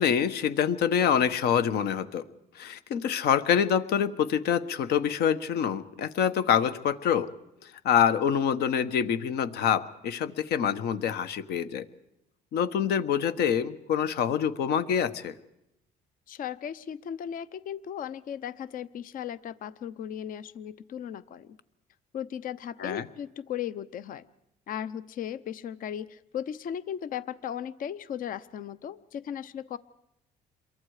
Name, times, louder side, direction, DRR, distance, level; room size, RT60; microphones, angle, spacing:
voice 1, 0.0-2.2 2.6-7.3 7.8-11.8 12.5-15.3 22.8-23.1, left 8 dB, 75° left, 12 dB, 1.3 m, -26 dB
voice 2, 16.3-21.6 22.1-24.2 24.7-29.8, left 9 dB, 55° left, 16 dB, 0.8 m, -36 dB
28.0 x 23.0 x 5.0 m, 0.85 s
cardioid pair, 110°, 17 cm